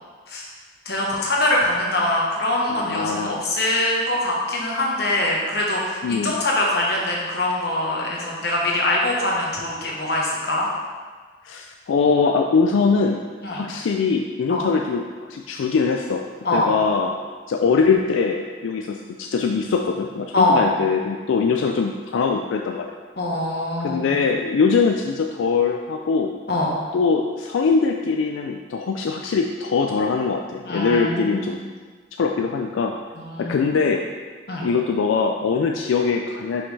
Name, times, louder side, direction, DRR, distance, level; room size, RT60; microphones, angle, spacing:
voice 1, 0.8-10.7 13.4-13.7 14.5-14.7 16.4-16.7 20.3-20.7 23.2-24.1 26.5-26.7 30.7-31.5 33.2-33.7 34.5-34.7, left 1 dB, 55° left, -3 dB, 1.1 m, -23 dB
voice 2, 2.7-3.4 6.0-6.4 11.4-13.2 13.5-16.2 16.5-17.2 17.5-22.9 23.8-26.3 26.9-31.6 32.2-32.9 33.4-34.0 34.6-36.6, left 5 dB, 85° left, 2 dB, 0.3 m, -22 dB
5.7 x 5.2 x 3.3 m, 1.5 s
head